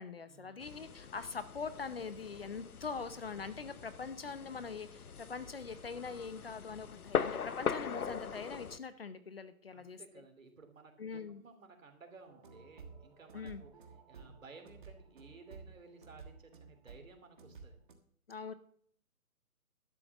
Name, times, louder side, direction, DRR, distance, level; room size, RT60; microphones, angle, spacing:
voice 1, 0.0-10.2 11.0-11.4 13.3-13.6 18.3-18.5, left 5 dB, 45° left, 13 dB, 0.8 m, -43 dB
sound 1, 0.6-8.8, left 6 dB, 85° left, 1.0 m, -41 dB
voice 2, 9.7-13.7 14.1-17.8, right 4 dB, 65° right, 5 dB, 3.1 m, -56 dB
sound 2, 12.3-17.9, right 5 dB, 35° right, 1.5 m, -53 dB
12.0 x 6.8 x 7.2 m, 0.62 s
hypercardioid pair, 165°, 43 cm